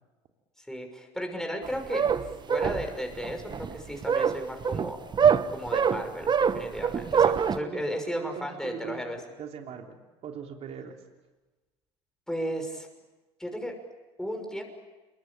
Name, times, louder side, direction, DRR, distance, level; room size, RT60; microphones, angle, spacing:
voice 1, 0.6-5.0 5.5-9.2 12.3-12.9 13.4-13.7 14.2-14.6, equal, 5° left, 3 dB, 6.2 m, -35 dB
sound 1, 1.6-7.6, right 7 dB, 30° right, 1.3 m, -25 dB
voice 2, 7.6-9.0 9.4-10.0 10.2-11.0, right 7 dB, 50° right, 3 dB, 3.3 m, -40 dB
28.0 x 23.5 x 8.7 m, 1.2 s
hypercardioid pair, 75°, 14 cm